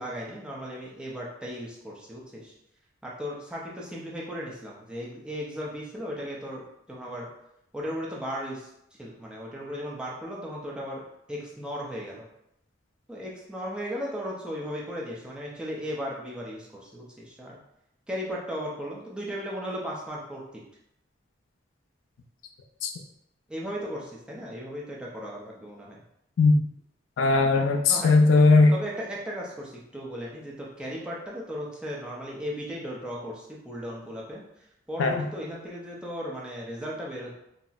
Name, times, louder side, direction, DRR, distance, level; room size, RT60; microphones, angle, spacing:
voice 1, 0.0-2.5 3.0-7.3 7.7-8.7 9.0-12.3 13.1-17.6 18.1-20.6 23.5-26.0 27.9-28.1 28.7-34.4 34.9-37.3, equal, 5° right, -4 dB, 0.5 m, -36 dB
voice 2, 27.2-28.7 35.0-35.2, left 3 dB, 85° left, 5 dB, 0.4 m, -19 dB
4.0 x 2.0 x 2.4 m, 0.79 s
head